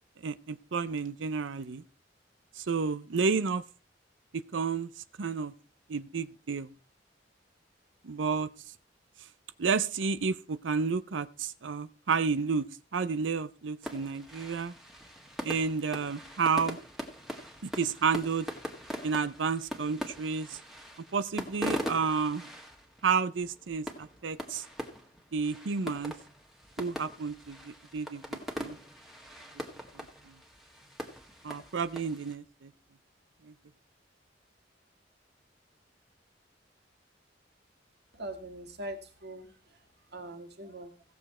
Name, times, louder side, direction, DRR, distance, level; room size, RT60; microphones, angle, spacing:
voice 1, 0.2-1.8 2.6-3.6 4.3-4.9 5.2-5.5 5.9-6.7 8.0-8.5 9.6-12.7 12.9-14.7 15.4-16.8 17.6-18.5 19.0-20.6 21.1-22.5 23.0-24.6 25.3-26.1 26.8-28.2 28.6-28.8 29.9-30.3 31.4-32.7 33.4-33.5, right 5 dB, 85° right, 14 dB, 0.6 m, -31 dB
sound 1, 13.8-32.4, equal, ahead, 1.6 m, -41 dB
voice 2, 38.1-39.8 40.1-40.9, right 1 dB, 60° right, 6 dB, 1.9 m, -42 dB
16.5 x 7.0 x 4.2 m, 0.33 s
head